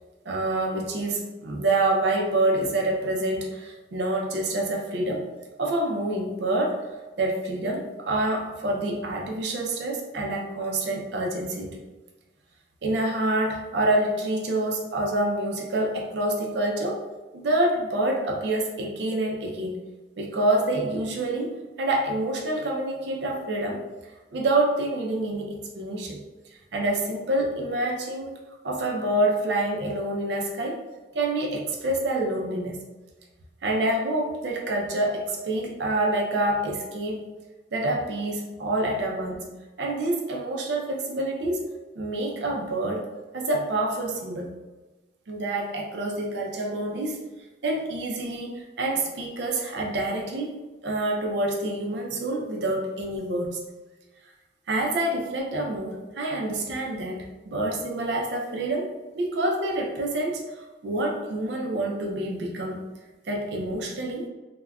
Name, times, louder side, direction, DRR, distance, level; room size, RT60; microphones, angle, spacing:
voice 1, 0.2-5.3 5.6-6.9 7.2-11.7 12.8-17.0 17.3-19.8 20.2-23.8 24.3-26.2 26.7-28.4 28.6-30.8 31.1-32.8 33.6-37.3 37.7-39.4 39.8-41.6 41.9-44.5 45.3-47.3 47.6-50.6 50.8-53.6 54.7-58.9 59.1-62.8 63.2-64.3, right 1 dB, 65° right, 0 dB, 0.4 m, -27 dB
2.2 x 2.1 x 3.4 m, 1.2 s
head